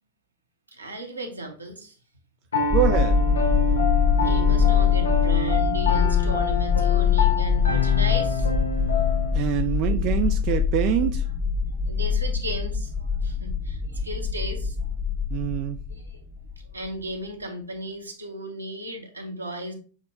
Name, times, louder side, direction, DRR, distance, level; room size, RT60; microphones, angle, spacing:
voice 1, 0.7-2.0 2.6-2.7 4.1-8.5 9.6-9.8 11.9-14.9 15.9-16.2 16.6-19.8, right 1 dB, 80° right, 0.9 m, -35 dB
Piano, 2.5-9.4, left 3 dB, 70° left, 0.6 m, -27 dB
sound 1, 2.7-16.9, left 7 dB, 20° right, 0.7 m, -23 dB
voice 2, 2.7-3.2 9.3-11.2 15.3-15.8, right 11 dB, 40° right, 0.3 m, -25 dB
6.2 x 2.2 x 3.4 m
figure-of-eight pair, 90°, 0 cm